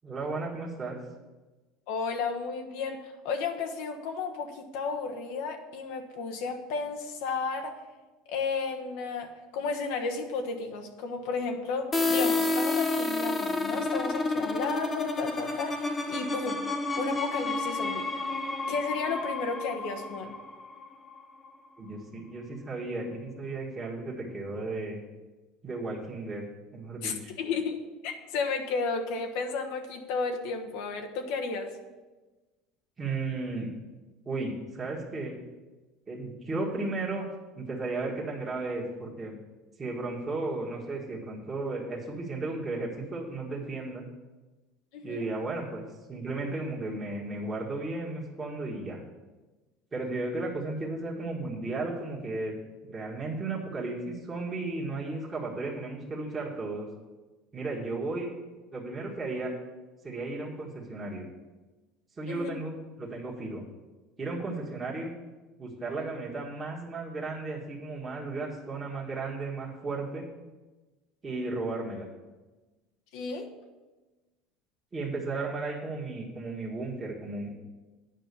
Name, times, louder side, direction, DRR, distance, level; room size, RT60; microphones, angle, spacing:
voice 1, 0.0-1.0 21.8-25.0 25.6-26.4 26.7-27.3 33.0-33.7 34.3-35.4 36.1-37.2 37.6-39.4 39.8-44.0 45.0-49.0 49.9-52.6 52.9-56.9 57.5-58.3 58.7-59.5 60.0-61.3 62.2-63.6 64.2-65.1 65.6-70.3 71.2-72.1 74.9-77.5, right 3 dB, 20° right, -4 dB, 1.8 m, -34 dB
voice 2, 1.9-7.8 8.3-16.6 17.0-18.1 18.7-20.3 27.0-27.8 28.0-31.7 44.9-45.3 62.3-62.5 73.1-73.5, left 4 dB, 75° left, 4 dB, 1.2 m, -33 dB
sound 1, 11.9-21.5, left 2 dB, 15° left, 0.8 m, -30 dB
9.2 x 5.5 x 6.9 m, 1.2 s
supercardioid pair, 135°, 0 cm